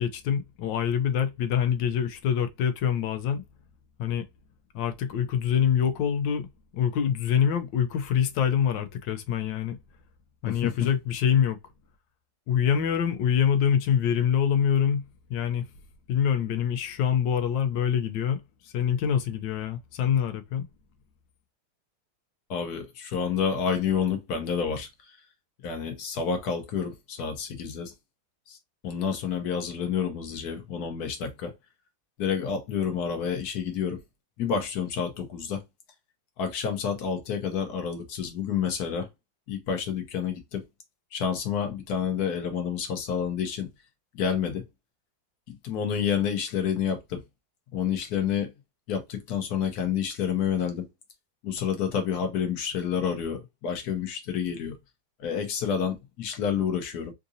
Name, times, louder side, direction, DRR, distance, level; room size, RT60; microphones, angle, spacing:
voice 1, 0.0-3.4 4.0-4.2 4.7-6.5 6.7-9.8 10.4-11.6 12.5-15.0 15.3-15.7 16.1-20.7, left 8 dB, 80° left, 1.3 m, -25 dB
voice 2, 10.4-10.9 22.5-24.9 25.6-27.9 28.5-28.6 28.8-31.5 32.2-34.0 34.4-35.6 36.4-39.1 39.5-40.6 41.1-43.7 44.1-44.6 45.6-47.2 47.7-48.5 48.9-50.9 51.4-54.7 55.2-57.1, left 7 dB, 60° left, 1.3 m, -29 dB
3.8 x 2.6 x 2.6 m
omnidirectional pair, 2.1 m